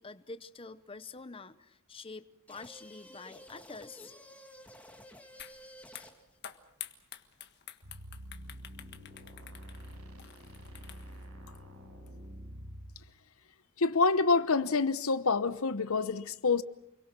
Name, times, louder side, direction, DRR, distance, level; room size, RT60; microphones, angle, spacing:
voice 1, 0.0-4.1, left 3 dB, 25° left, 0.8 m, -47 dB
sound 1, 2.5-6.4, equal, 5° left, 2.2 m, -52 dB
sound 2, 5.4-5.6 5.9-11.2, left 10 dB, 50° left, 1.6 m, -48 dB
sound 3, 7.8-12.9, equal, 85° right, 6.4 m, -47 dB
voice 2, 13.8-16.6, left 4 dB, 75° left, 1.0 m, -27 dB
29.5 x 23.0 x 6.1 m
head